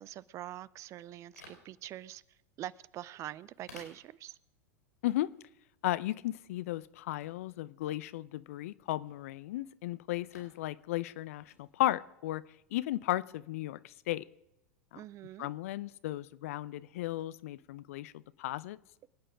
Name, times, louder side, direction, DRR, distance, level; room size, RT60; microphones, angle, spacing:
voice 1, 0.0-2.2 2.6-4.4 14.9-15.5, right 13 dB, 35° right, 21 dB, 0.5 m, -44 dB
sound 1, 1.2-15.3, left 3 dB, 85° left, 4.7 m, -62 dB
voice 2, 5.8-12.4 12.7-14.2 14.9-15.0 15.4-18.8, left 15 dB, 60° left, 18 dB, 0.6 m, -35 dB
25.0 x 8.8 x 5.0 m, 0.84 s
figure-of-eight pair, 90°, 8 cm